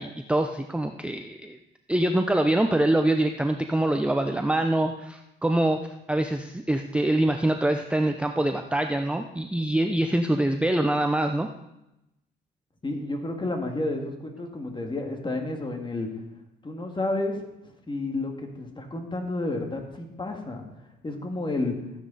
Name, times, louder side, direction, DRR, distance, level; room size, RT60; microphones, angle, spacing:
voice 1, 0.0-1.6 1.9-11.5, right 1 dB, 5° right, 5 dB, 0.7 m, -24 dB
voice 2, 12.8-16.1 16.6-21.8, left 2 dB, 25° left, 3 dB, 2.3 m, -31 dB
14.0 x 9.6 x 4.2 m, 0.88 s
cardioid pair, 90°, 20 cm